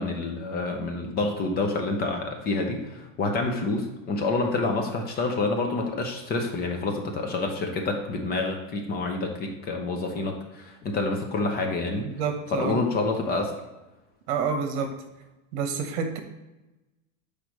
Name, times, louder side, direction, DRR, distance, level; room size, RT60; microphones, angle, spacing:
voice 1, 0.0-12.1 12.5-13.5, left 3 dB, 25° left, 3 dB, 0.7 m, -28 dB
voice 2, 12.0-12.8 14.3-14.9 15.5-16.2, right 5 dB, 65° right, 6 dB, 1.1 m, -28 dB
8.0 x 4.9 x 3.1 m, 1.0 s
supercardioid pair, 165°, 36 cm